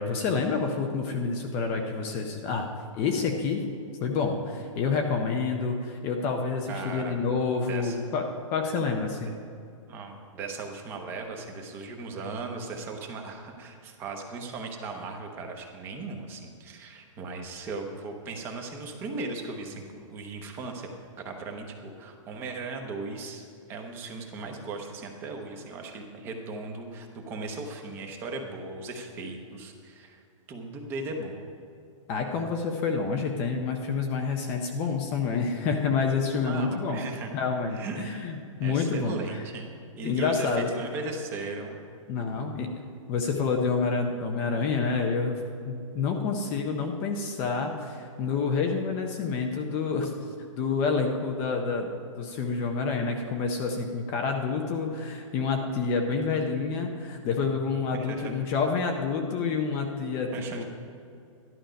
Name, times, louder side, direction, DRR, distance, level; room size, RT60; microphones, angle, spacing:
voice 1, 0.0-2.7 3.0-3.6 4.0-9.3 32.1-37.0 37.3-38.3 38.6-39.4 40.0-40.7 42.1-42.7 43.1-50.1 50.5-60.6, left 5 dB, 15° left, 3 dB, 0.4 m, -28 dB
voice 2, 6.7-7.2 7.7-8.0 9.9-20.9 21.2-30.2 30.5-31.4 36.4-37.4 37.7-38.3 38.6-39.7 40.0-41.8 42.2-42.5 56.3-56.4 57.9-58.3 60.3-60.6, right 3 dB, 15° right, 3 dB, 0.8 m, -37 dB
13.0 x 11.5 x 5.1 m, 2.5 s
hypercardioid pair, 175°, 17 cm